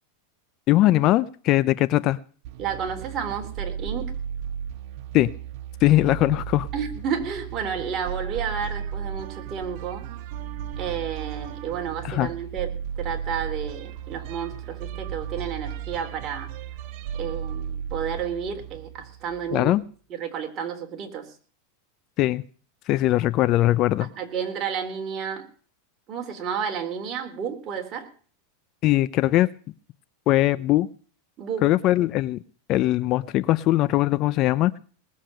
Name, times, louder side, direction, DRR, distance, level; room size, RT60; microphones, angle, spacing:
voice 1, 0.7-2.2 5.1-5.3 5.8-6.7 12.0-12.3 19.5-19.8 22.2-22.4 22.9-24.1 28.8-29.5 30.3-30.9 31.6-32.4 32.7-34.8, left 16 dB, 40° left, 16 dB, 0.7 m, -20 dB
sound 1, 2.4-19.8, right 8 dB, 55° right, 1.5 m, -35 dB
voice 2, 2.6-4.1 6.7-10.1 10.8-16.5 17.2-19.7 20.1-21.3 24.2-25.5 26.1-28.1 31.4-31.7, right 7 dB, 35° right, 3 dB, 3.7 m, -31 dB
19.5 x 7.5 x 7.7 m, 0.42 s
supercardioid pair, 130°, 0 cm